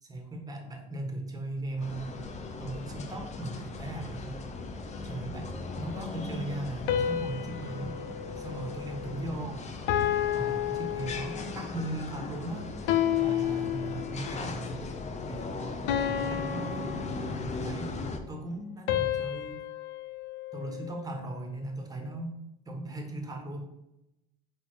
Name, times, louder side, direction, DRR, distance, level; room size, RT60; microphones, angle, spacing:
voice 1, 0.0-2.2 2.6-4.4 5.0-8.0 8.4-9.6 10.3-12.7 13.2-14.8 15.3-17.0 17.5-18.0 18.3-19.6 20.5-22.4 22.6-23.6, right 1 dB, 20° right, 3 dB, 1.5 m, -38 dB
sound 1, 1.8-18.2, left 3 dB, 35° left, 0.8 m, -38 dB
sound 2, 6.9-9.4 9.9-11.6 12.9-14.4 15.9-17.7 18.9-21.2, left 10 dB, 70° left, 0.6 m, -31 dB
5.2 x 4.2 x 4.9 m, 0.90 s
supercardioid pair, 105°, 20 cm